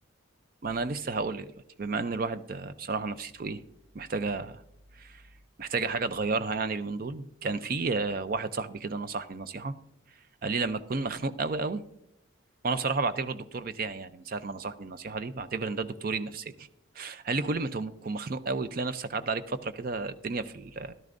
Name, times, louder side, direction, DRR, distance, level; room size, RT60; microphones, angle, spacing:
voice 1, 0.6-1.5 1.8-3.6 3.9-4.6 5.0-5.2 5.6-9.7 10.4-11.8 12.6-16.7 17.0-20.9, right 4 dB, 45° right, 12 dB, 0.5 m, -32 dB
14.0 x 12.0 x 2.6 m, 0.78 s
head